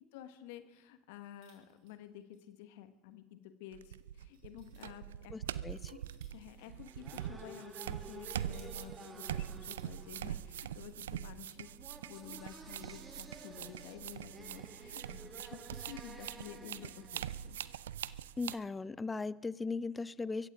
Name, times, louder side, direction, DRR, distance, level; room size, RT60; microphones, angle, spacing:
voice 1, 0.1-5.6 5.9-6.0 6.3-11.7 12.0-17.6, left 11 dB, 70° left, 9 dB, 1.4 m, -51 dB
sound 1, 1.4-2.5 2.8-2.9 3.5-3.6 4.3-4.9 5.8-6.5 6.8-6.9 7.9-8.7 9.5-9.9 10.7-11.1 12.1-13.0 13.9-14.5 15.3-16.2, right 7 dB, 65° right, 4.5 m, -67 dB
sound 2, 3.7-18.6, right 11 dB, 80° right, 0.4 m, -43 dB
voice 2, 5.3-5.9 18.4-20.5, left 4 dB, 20° left, 19 dB, 0.5 m, -38 dB
sound 3, 6.6-18.4, right 2 dB, 20° right, 2.3 m, -54 dB
23.0 x 15.0 x 3.7 m, 1.1 s
hypercardioid pair, 75°, 0 cm